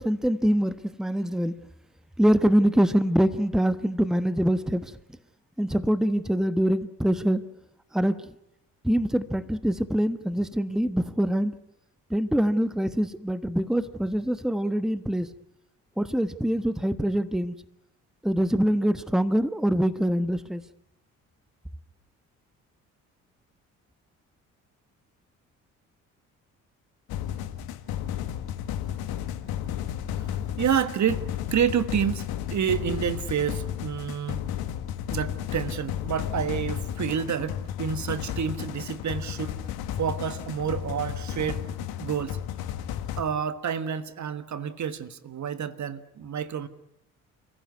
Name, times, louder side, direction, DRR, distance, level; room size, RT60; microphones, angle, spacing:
voice 1, 0.0-1.5 2.2-5.0 5.6-7.4 7.9-8.3 8.8-11.5 12.1-15.3 16.0-17.5 18.2-20.6, equal, ahead, 1.3 m, -24 dB
sound 1, 27.1-43.2, left 10 dB, 65° left, 1.8 m, -33 dB
voice 2, 30.6-34.4 35.1-39.6 40.0-41.6 42.0-42.4 43.2-46.7, right 8 dB, 45° right, 1.5 m, -29 dB
29.5 x 15.5 x 9.5 m
hypercardioid pair, 45°, 40 cm